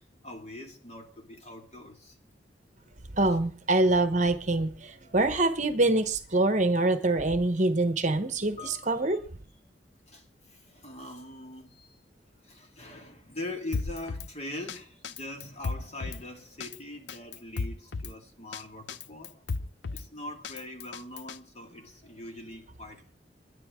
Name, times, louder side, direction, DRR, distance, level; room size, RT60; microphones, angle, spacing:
voice 1, 0.0-2.2 5.0-5.2 8.5-9.0 10.1-12.0 12.4-19.4 19.9-23.1, left 1 dB, 35° left, 2.2 m, -42 dB
voice 2, 3.1-9.2, right 2 dB, 40° right, 1.0 m, -25 dB
Drum kit, 13.7-14.3 14.7-14.8 15.0-16.2 16.6-16.8 17.1-18.1 18.5-18.6 18.9-20.1 20.4-21.4, left 4 dB, 80° left, 0.6 m, -34 dB
21.5 x 10.5 x 3.7 m
head